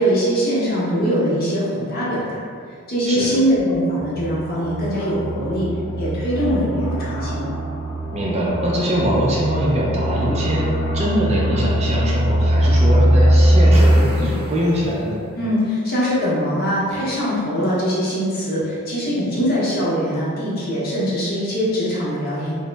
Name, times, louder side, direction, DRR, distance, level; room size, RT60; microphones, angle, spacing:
voice 1, 0.0-2.4 2.9-5.7 6.0-7.4 15.3-22.5, equal, 40° left, -7 dB, 0.8 m, -22 dB
sound 1, 4.0-14.0, equal, 90° left, 0.8 m, -20 dB
voice 2, 8.1-15.2, right 1 dB, 30° right, -4 dB, 0.3 m, -22 dB
sound 2, 13.5-15.5, right 1 dB, 75° right, 0.6 m, -37 dB
2.9 x 2.0 x 3.2 m, 2.2 s
head